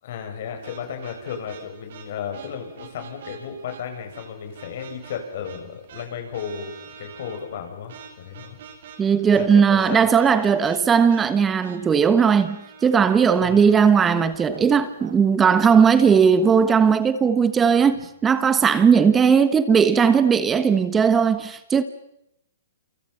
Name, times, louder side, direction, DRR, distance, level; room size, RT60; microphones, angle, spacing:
voice 1, 0.0-8.6 9.3-10.1 13.4-13.7, left 7 dB, 60° left, 7.6 m, -34 dB
sound 1, 0.6-17.1, right 7 dB, 65° right, 4.6 m, -45 dB
voice 2, 9.0-21.8, right 6 dB, 15° right, 1.3 m, -18 dB
28.5 x 27.0 x 5.8 m
hypercardioid pair, 135°, 0 cm